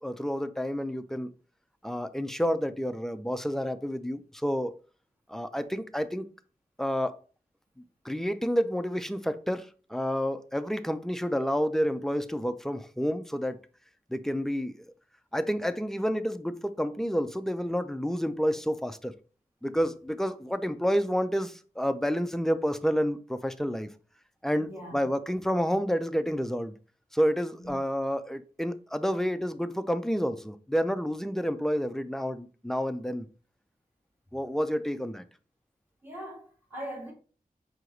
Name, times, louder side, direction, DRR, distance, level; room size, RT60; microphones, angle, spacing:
voice 1, 0.0-1.3 1.8-4.7 5.3-6.3 6.8-7.2 8.0-13.6 14.1-14.8 15.3-19.1 19.6-23.9 24.4-26.7 27.1-33.3 34.3-35.2, equal, 5° left, 0.4 m, -29 dB
voice 2, 24.6-25.0 27.6-27.7 36.0-37.1, equal, 15° right, 1.7 m, -41 dB
4.5 x 2.8 x 3.9 m
wide cardioid pair, 80°, 15 cm